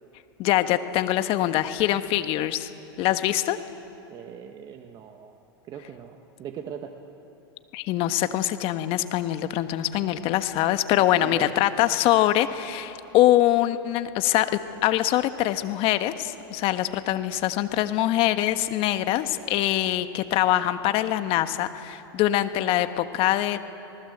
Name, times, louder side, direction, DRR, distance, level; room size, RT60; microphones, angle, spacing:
voice 1, 0.4-2.7 3.0-3.6 7.7-23.6, left 14 dB, 45° left, 10 dB, 1.4 m, -23 dB
voice 2, 4.1-6.9 11.2-11.5, right 8 dB, 35° right, 5 dB, 1.5 m, -40 dB
27.0 x 19.5 x 8.0 m, 3.0 s
hypercardioid pair, 115°, 13 cm